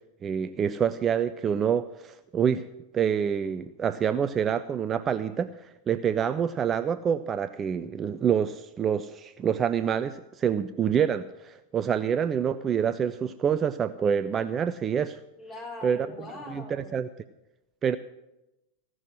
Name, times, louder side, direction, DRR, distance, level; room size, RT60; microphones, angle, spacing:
voice 1, 0.2-2.7 2.9-5.5 5.9-15.2 15.8-16.0 16.5-17.1 17.8-18.0, right 8 dB, 25° right, 11 dB, 0.4 m, -27 dB
voice 2, 15.4-17.0, left 2 dB, 20° left, 0 dB, 3.7 m, -41 dB
15.5 x 6.2 x 9.8 m, 0.93 s
figure-of-eight pair, 90°, 0 cm